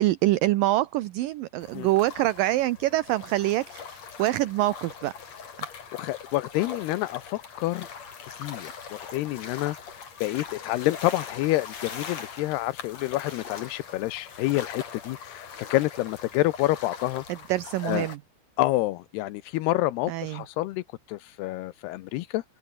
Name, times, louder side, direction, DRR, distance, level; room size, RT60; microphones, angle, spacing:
voice 1, 0.0-5.1 17.3-18.2 20.1-20.4, right 16 dB, 75° right, 2.2 m, -25 dB
sound 1, 1.6-18.2, left 6 dB, 45° left, 4.0 m, -42 dB
voice 2, 5.9-7.9 8.3-9.8 10.2-17.2 17.8-18.1 18.6-22.4, left 17 dB, 85° left, 2.9 m, -28 dB
open air
omnidirectional pair, 4.6 m